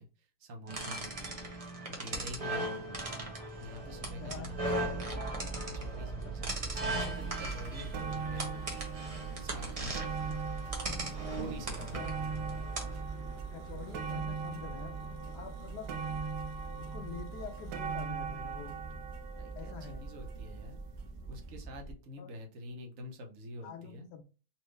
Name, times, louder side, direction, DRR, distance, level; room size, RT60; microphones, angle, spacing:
voice 1, 0.0-3.3 3.6-5.3 5.6-10.4 11.3-12.1 19.3-20.8 21.3-24.1, equal, 55° right, 2 dB, 1.2 m, -47 dB
sound 1, 0.7-13.0, right 1 dB, 30° right, 0.7 m, -38 dB
sound 2, 2.8-21.9, right 4 dB, 15° left, 0.4 m, -43 dB
sound 3, 7.2-7.3 7.6-20.8 21.6-21.7, right 5 dB, 85° right, 1.2 m, -41 dB
voice 2, 11.8-12.2 13.5-15.0 15.3-15.9 16.8-18.8 19.6-20.1 22.2-22.3 23.6-24.2, left 6 dB, 80° left, 5 dB, 1.2 m, -46 dB
4.3 x 2.7 x 3.2 m, 0.34 s
omnidirectional pair, 1.8 m